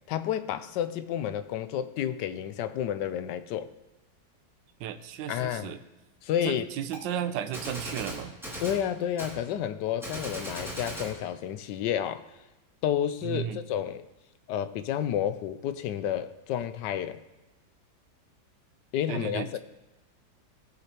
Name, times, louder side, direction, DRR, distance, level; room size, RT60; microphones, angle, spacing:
voice 1, 0.1-3.7 5.3-5.7 6.2-6.7 8.6-12.2 12.8-14.1 14.5-17.2 18.9-19.6, left 10 dB, 75° left, 12 dB, 1.1 m, -30 dB
voice 2, 4.8-5.8 6.4-8.4 13.2-13.6 19.1-19.6, right 10 dB, 75° right, 10 dB, 1.3 m, -34 dB
Gunshot gunfire, 6.9-7.0 7.5-8.8 9.2-9.4 10.0-11.1, equal, ahead, 2.2 m, -38 dB
17.5 x 6.6 x 2.9 m, 1.1 s
omnidirectional pair, 2.1 m